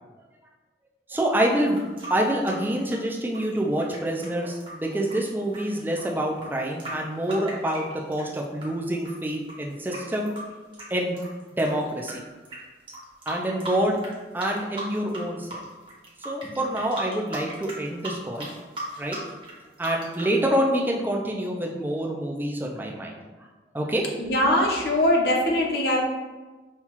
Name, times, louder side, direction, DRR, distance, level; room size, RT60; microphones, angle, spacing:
voice 1, 1.1-1.8 2.1-10.3 10.9-11.2 11.6-12.2 13.3-14.0 14.3-15.6 16.2-18.5 19.0-19.2 19.8-23.2 23.7-24.0, right 1 dB, 10° right, -1 dB, 0.4 m, -26 dB
sound 1, 1.5-8.7 9.0-12.1 12.4-12.6 12.9-14.1 14.4-15.2 15.5-20.3, right 2 dB, 30° right, 0.9 m, -38 dB
voice 2, 24.2-26.0, left 1 dB, 60° left, -1 dB, 0.8 m, -22 dB
5.6 x 2.3 x 3.0 m, 1.2 s
head